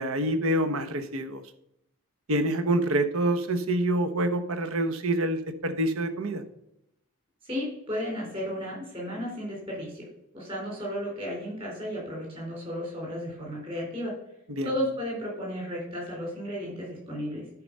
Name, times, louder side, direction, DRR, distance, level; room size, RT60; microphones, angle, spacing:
voice 1, 0.0-1.4 2.3-6.4 14.5-14.7, right 1 dB, 75° right, 9 dB, 1.0 m, -26 dB
voice 2, 7.4-10.1 10.3-14.1 14.6-17.4, equal, 25° right, -3 dB, 4.0 m, -33 dB
10.5 x 4.7 x 5.3 m, 0.81 s
head